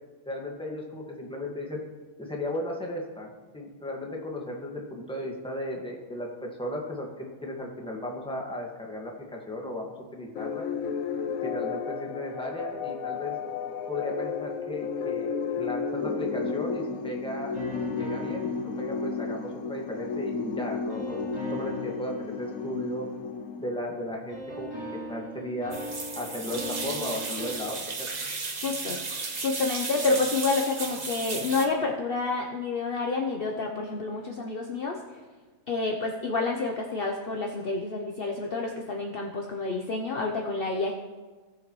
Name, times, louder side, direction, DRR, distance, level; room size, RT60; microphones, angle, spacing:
voice 1, 0.2-1.8 2.2-10.6 11.4-13.4 13.9-21.2 21.5-23.0 23.6-24.7 25.1-25.7 26.1-28.1, left 1 dB, 5° left, -1 dB, 1.6 m, -35 dB
sound 1, 10.4-24.1, left 5 dB, 85° left, 1.2 m, -33 dB
sound 2, 17.5-20.2 20.9-23.9 24.3-27.5, equal, 65° right, 3.9 m, -40 dB
sound 3, 25.7-31.7, right 3 dB, 35° right, 1.0 m, -34 dB
voice 2, 28.6-29.0 29.4-35.0 35.7-40.9, left 3 dB, 50° left, 1 dB, 0.9 m, -29 dB
18.0 x 7.0 x 3.1 m, 1.4 s
omnidirectional pair, 1.4 m